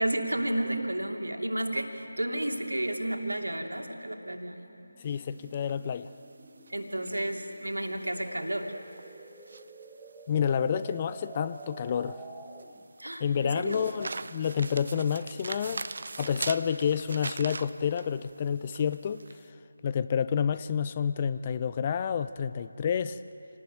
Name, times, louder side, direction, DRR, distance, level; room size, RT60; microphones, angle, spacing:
voice 1, 0.0-4.7 6.7-8.7 13.0-13.9, right 1 dB, 70° right, 3 dB, 2.8 m, -32 dB
sound 1, 1.9-12.9, right 3 dB, 5° right, 1.2 m, -51 dB
voice 2, 5.0-6.1 10.3-12.2 13.2-15.9 16.2-19.2 19.8-23.2, left 7 dB, 20° left, 13 dB, 0.5 m, -29 dB
sound 2, 5.0-19.4, right 3 dB, 45° right, 0.8 m, -42 dB
27.5 x 19.0 x 9.1 m, 2.7 s
figure-of-eight pair, 160°, 0 cm